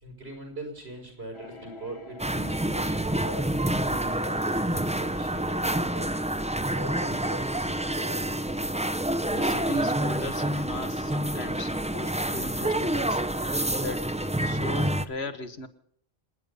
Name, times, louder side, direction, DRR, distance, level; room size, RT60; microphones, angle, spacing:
voice 1, 0.0-2.9 3.2-6.1 6.7-8.2, right 2 dB, 80° right, 3 dB, 5.2 m, -41 dB
sound 1, 1.3-8.7, left 3 dB, 30° left, 1.1 m, -51 dB
sound 2, 2.2-15.1, right 1 dB, 10° right, 0.6 m, -28 dB
voice 2, 9.3-13.2 13.7-14.2 14.4-15.7, left 3 dB, 85° left, 9 dB, 1.8 m, -38 dB
27.0 x 9.7 x 5.3 m, 0.63 s
omnidirectional pair, 1.1 m